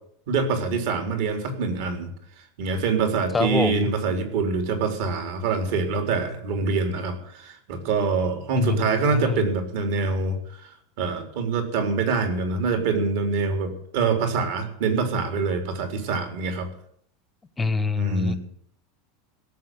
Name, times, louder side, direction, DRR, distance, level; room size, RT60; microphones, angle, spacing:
voice 1, 0.3-2.1 2.6-10.6 11.0-16.7 18.0-18.4, right 4 dB, 55° right, 6 dB, 3.8 m, -25 dB
voice 2, 3.3-3.9 8.6-9.5 17.6-18.3, left 4 dB, 10° left, 13 dB, 0.9 m, -25 dB
17.0 x 7.7 x 9.3 m, 0.66 s
supercardioid pair, 170°, 0 cm